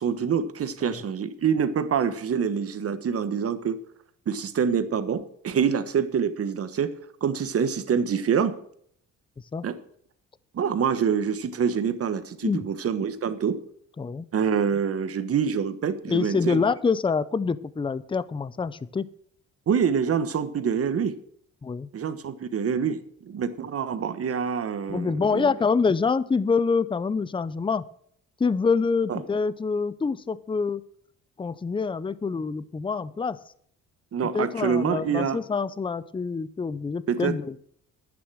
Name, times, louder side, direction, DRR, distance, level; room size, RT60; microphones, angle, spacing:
voice 1, 0.0-3.8 4.3-6.9 7.2-8.5 9.6-9.8 10.5-13.6 14.3-16.6 19.7-21.2 21.9-25.5 29.1-29.2 34.1-35.4 37.1-37.4, right 7 dB, 50° right, 12 dB, 1.3 m, -26 dB
voice 2, 16.1-19.1 21.6-21.9 24.9-27.8 28.4-30.8 31.4-33.4 34.3-37.5, left 5 dB, 15° left, 17 dB, 0.6 m, -26 dB
11.0 x 9.6 x 6.2 m, 0.64 s
cardioid pair, 90°, 30 cm